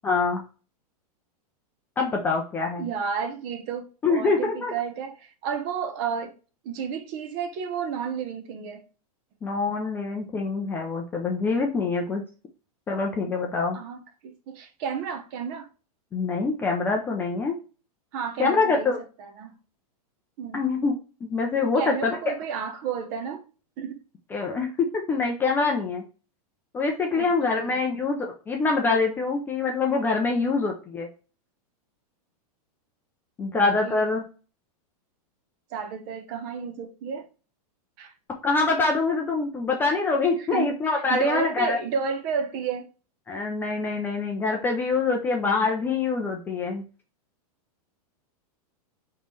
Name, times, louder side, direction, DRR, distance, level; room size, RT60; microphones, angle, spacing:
voice 1, 0.0-0.4 2.0-2.9 4.0-4.7 9.4-12.2 12.9-13.8 16.1-17.5 18.4-19.0 20.5-22.2 24.3-26.0 26.7-31.1 33.4-34.3 38.4-41.8 43.3-46.8, left 4 dB, 10° left, 0.4 m, -25 dB
voice 2, 2.8-6.3 6.6-8.8 13.7-15.7 18.1-18.9 19.2-19.6 20.4-20.7 21.7-23.5 23.8-24.0 27.1-27.8 33.8-34.1 35.7-37.3 38.0-38.1 40.4-42.9, right 6 dB, 35° right, 0.7 m, -32 dB
3.6 x 3.1 x 3.9 m
supercardioid pair, 155°, 20 cm